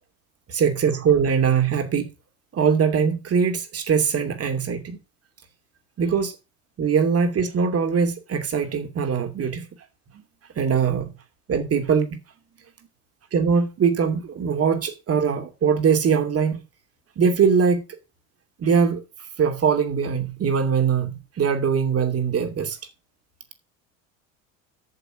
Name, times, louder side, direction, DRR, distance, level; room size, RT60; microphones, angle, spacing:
voice 1, 0.5-2.1 2.5-5.0 6.0-6.3 6.8-9.7 10.6-11.1 11.5-12.2 13.3-16.6 17.2-17.8 18.6-19.0 19.4-22.8, right 6 dB, 35° right, 2.7 m, -22 dB
8.7 x 6.9 x 7.6 m
hypercardioid pair, 85°, 39 cm